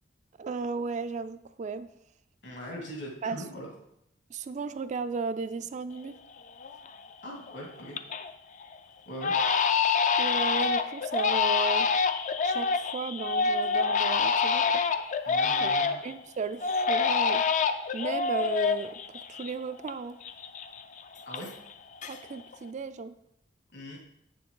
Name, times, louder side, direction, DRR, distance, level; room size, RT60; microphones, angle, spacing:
voice 1, 0.4-1.9 3.2-3.4 4.3-6.2 10.2-11.9 12.4-14.8 15.6-15.8 16.0-17.4 17.9-20.2 22.1-23.1, right 4 dB, 40° right, 11 dB, 0.3 m, -35 dB
voice 2, 2.4-3.7 7.2-8.0 9.1-9.3 15.2-16.0 21.3-21.5 23.7-24.0, equal, 65° left, -1 dB, 2.4 m, -41 dB
Crying sobbing, 6.0-6.1 6.6-7.1 7.5-8.3 8.6-8.8 9.2-16.1 16.6-19.9 20.2-21.7 22.0-22.5, left 5 dB, 40° left, 0.4 m, -27 dB
7.7 x 6.9 x 3.8 m, 0.77 s
head